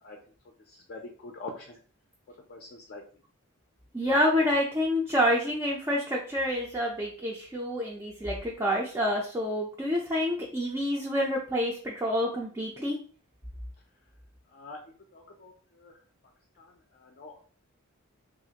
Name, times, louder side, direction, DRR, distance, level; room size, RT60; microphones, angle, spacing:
voice 1, 0.7-1.8 2.5-3.0 14.5-14.8 15.1-16.0 16.6-17.4, left 3 dB, 45° left, 2 dB, 0.4 m, -45 dB
voice 2, 3.9-13.0, equal, 15° right, -3 dB, 0.4 m, -28 dB
2.9 x 2.4 x 2.8 m, 0.42 s
head